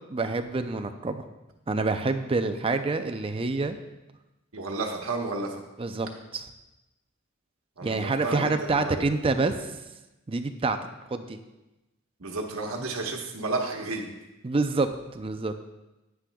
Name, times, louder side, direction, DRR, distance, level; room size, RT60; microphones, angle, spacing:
voice 1, 0.1-1.2 1.7-3.8 5.8-6.1 6.3-6.4 7.8-9.5 10.3-10.8 11.1-11.4 14.4-15.5, right 3 dB, 25° right, 8 dB, 0.5 m, -27 dB
voice 2, 4.5-5.6 7.8-9.1 12.2-14.1, right 3 dB, 90° right, 1 dB, 1.3 m, -32 dB
9.8 x 9.6 x 2.3 m, 1.0 s
head